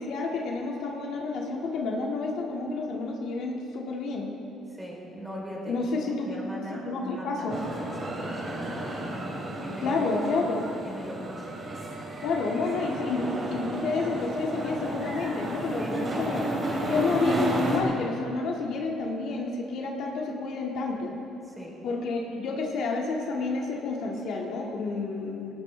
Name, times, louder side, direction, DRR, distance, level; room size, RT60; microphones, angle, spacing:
voice 1, 0.0-4.3 5.7-6.4 6.9-7.5 9.8-10.6 12.2-16.5 16.9-21.1 21.8-25.5, left 3 dB, 60° left, 0 dB, 2.0 m, -30 dB
voice 2, 4.7-5.8 6.0-9.0 9.6-10.0 10.8-11.5 15.8-16.7 21.4-21.8, equal, 5° right, -2 dB, 3.5 m, -40 dB
sound 1, 7.5-17.8, right 1 dB, 25° right, 2.8 m, -32 dB
18.5 x 18.0 x 3.4 m, 2.8 s
cardioid pair, 135°, 0 cm